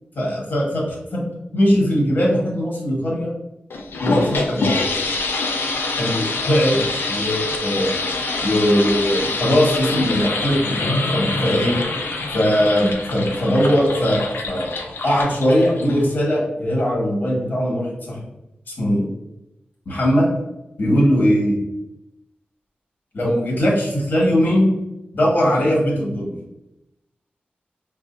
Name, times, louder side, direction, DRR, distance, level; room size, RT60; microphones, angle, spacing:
voice 1, 0.1-0.8 1.1-1.2 1.5-3.3 4.0-4.8 6.0-6.8 7.1-8.0 8.4-11.7 12.3-14.2 14.5-14.7 15.0-18.2 18.7-19.1 19.8-20.3 20.8-21.6 23.1-24.7 25.1-26.3, equal, 60° left, -4 dB, 1.4 m, -20 dB
sound 1, 3.7-16.2, left 3 dB, 85° left, 0.5 m, -25 dB
4.8 x 2.5 x 2.5 m, 0.92 s
wide cardioid pair, 75°, 4 cm